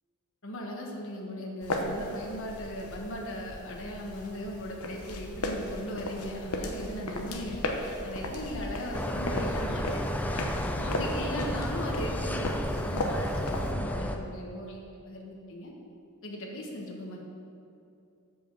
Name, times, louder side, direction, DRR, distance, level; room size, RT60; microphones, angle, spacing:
voice 1, 0.4-15.7 16.2-17.2, equal, 60° left, -1 dB, 1.3 m, -38 dB
sound 1, 1.6-13.7, left 1 dB, 85° left, 0.9 m, -36 dB
sound 2, 8.9-14.2, equal, 5° left, 0.3 m, -32 dB
6.8 x 5.4 x 7.2 m, 2.6 s
head